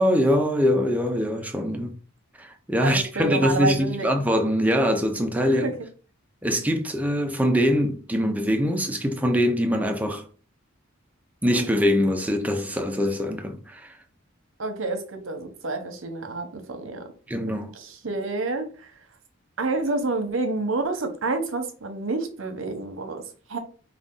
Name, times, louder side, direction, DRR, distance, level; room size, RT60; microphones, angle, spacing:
voice 1, 0.0-1.9 2.4-5.7 6.4-10.3 11.4-13.9 17.3-17.7, equal, 5° right, 0.5 m, -23 dB
voice 2, 2.8-4.1 5.4-5.8 14.6-17.1 17.7-18.9 19.6-23.6, right 3 dB, 65° right, 0.9 m, -28 dB
5.0 x 2.4 x 3.7 m
head